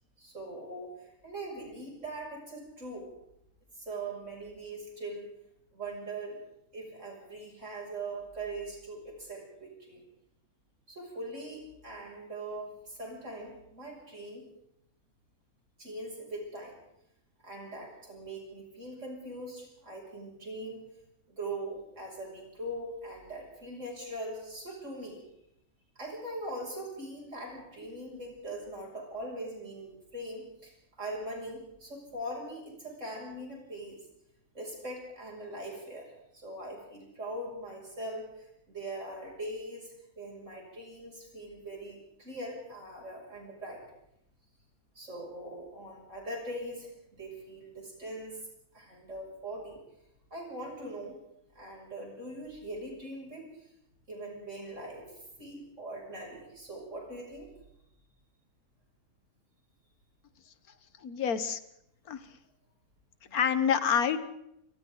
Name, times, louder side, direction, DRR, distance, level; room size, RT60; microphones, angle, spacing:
voice 1, 0.2-3.1 3.8-5.3 5.7-6.4 6.7-10.0 10.9-14.4 15.8-16.8 17.4-20.8 21.3-25.2 26.0-34.0 34.5-43.8 45.0-48.4 48.7-49.8 50.3-51.2 51.5-53.7 54.1-57.5 63.2-63.3, right 1 dB, 55° right, -1 dB, 7.4 m, -41 dB
voice 2, 61.0-61.6 62.1-62.3 63.3-64.2, left 7 dB, 75° left, 12 dB, 1.7 m, -27 dB
29.0 x 24.5 x 4.0 m, 0.80 s
omnidirectional pair, 1.6 m